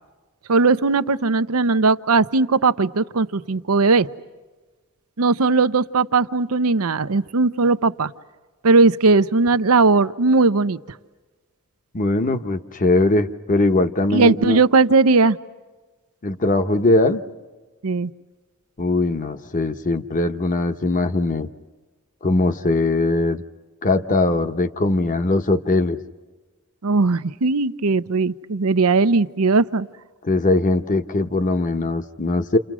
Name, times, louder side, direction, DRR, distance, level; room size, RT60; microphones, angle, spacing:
voice 1, 0.5-4.1 5.2-8.1 8.6-10.8 14.1-15.4 17.8-18.1 26.8-29.9, right 3 dB, 85° right, 13 dB, 0.7 m, -18 dB
voice 2, 11.9-14.6 16.2-17.2 18.8-21.5 22.2-23.4 23.8-26.0 30.2-32.6, left 2 dB, 40° left, 9 dB, 1.0 m, -20 dB
29.5 x 28.5 x 6.2 m, 1.3 s
head